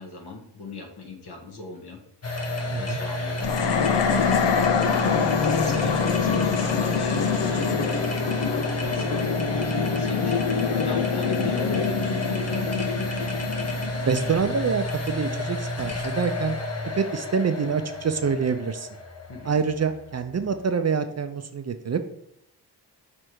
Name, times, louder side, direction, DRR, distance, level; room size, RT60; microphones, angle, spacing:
voice 1, 0.0-2.0 2.4-5.2 5.6-8.4 8.8-10.5 10.8-12.7 19.3-19.6, left 2 dB, 65° left, 1 dB, 1.6 m, -39 dB
sound 1, 2.2-20.9, left 1 dB, 35° left, 1.1 m, -31 dB
sound 2, 3.4-14.8, left 6 dB, 80° left, 0.7 m, -25 dB
voice 2, 14.1-16.6 17.0-18.9 19.5-22.0, right 6 dB, 40° right, 8 dB, 0.5 m, -26 dB
6.4 x 3.4 x 4.5 m, 0.74 s
cardioid pair, 80°, 43 cm